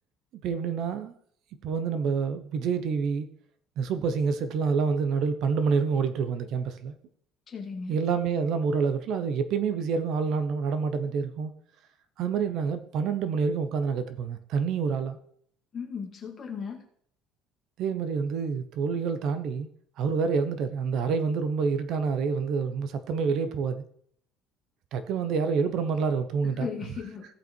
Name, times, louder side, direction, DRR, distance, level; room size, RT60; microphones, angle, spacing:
voice 1, 0.3-1.1 1.6-3.3 3.8-6.9 7.9-11.5 12.2-15.2 17.8-19.7 20.0-23.8 24.9-26.7, right 5 dB, 50° right, 0.8 m, -27 dB
voice 2, 7.5-7.9 15.7-16.8 26.4-27.3, left 6 dB, 25° left, 2.0 m, -36 dB
16.5 x 5.6 x 4.5 m
cardioid pair, 170°, 0 cm